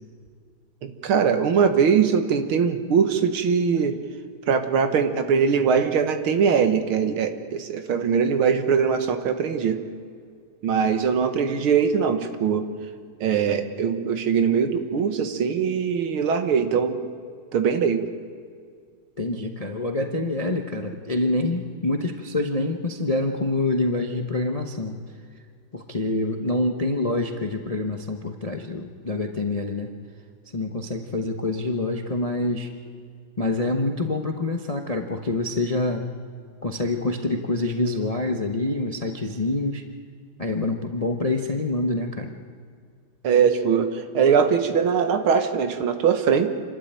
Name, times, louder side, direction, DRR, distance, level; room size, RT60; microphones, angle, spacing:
voice 1, 0.8-4.0 4.5-9.8 10.6-12.6 13.2-17.0 17.5-18.0 43.2-46.5, right 6 dB, 70° right, 8 dB, 2.1 m, -21 dB
voice 2, 19.2-25.0 25.7-29.9 30.5-32.7 33.4-36.0 36.6-39.8 40.4-42.3, left 2 dB, 30° left, 5 dB, 0.6 m, -26 dB
27.5 x 12.5 x 9.0 m, 2.2 s
omnidirectional pair, 2.4 m